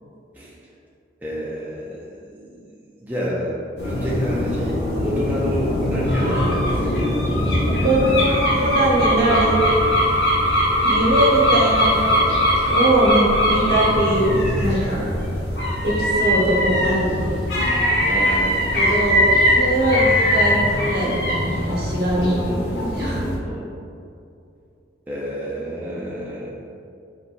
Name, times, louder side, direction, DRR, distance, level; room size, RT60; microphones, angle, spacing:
voice 1, 1.2-2.7 3.0-7.2 7.4-7.5 18.1-19.0 22.1-23.7 25.1-26.5, equal, 10° right, -7 dB, 0.5 m, -29 dB
sound 1, 3.8-23.3, equal, 65° left, 1.2 m, -21 dB
voice 2, 7.6-9.6 10.8-12.4 12.7-15.1 15.8-17.2 18.7-22.5 22.8-23.2, right 1 dB, 60° right, -6 dB, 1.1 m, -21 dB
4.4 x 4.2 x 2.5 m, 2.5 s
head